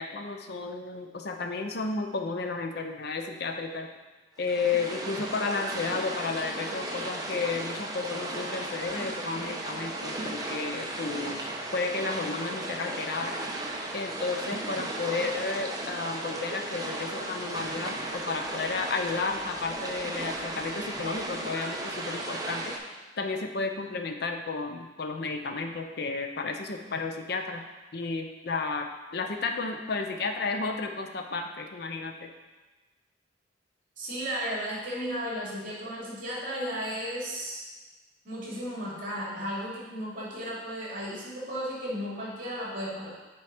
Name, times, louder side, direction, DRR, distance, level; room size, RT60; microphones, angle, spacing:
voice 1, 0.0-3.9 4.4-13.4 13.9-22.7 23.2-27.6 27.9-32.3, left 4 dB, 60° left, 5 dB, 0.6 m, -32 dB
sound 1, 4.4-22.8, right 2 dB, 20° right, 0.8 m, -35 dB
voice 2, 34.0-37.6 38.2-43.1, equal, 50° right, -5 dB, 2.5 m, -34 dB
6.9 x 4.7 x 4.9 m, 1.2 s
head